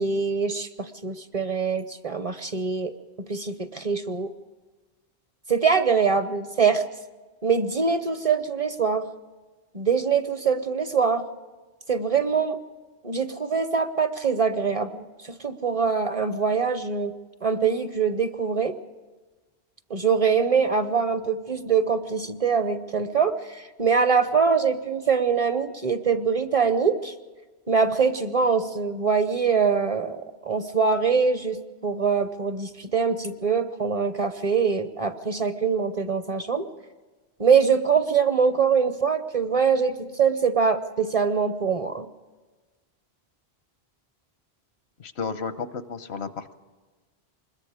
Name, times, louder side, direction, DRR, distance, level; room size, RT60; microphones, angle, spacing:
voice 1, 0.0-2.9 3.3-4.3 5.5-6.8 7.4-9.0 9.7-11.2 11.9-12.6 13.0-17.1 17.4-18.8 19.9-27.1 27.7-31.6 31.8-36.7 37.4-42.1, right 6 dB, 40° right, 10 dB, 0.7 m, -23 dB
voice 2, 45.0-46.5, left 5 dB, 85° left, 12 dB, 1.1 m, -33 dB
25.0 x 21.0 x 4.9 m, 1.3 s
omnidirectional pair, 1.1 m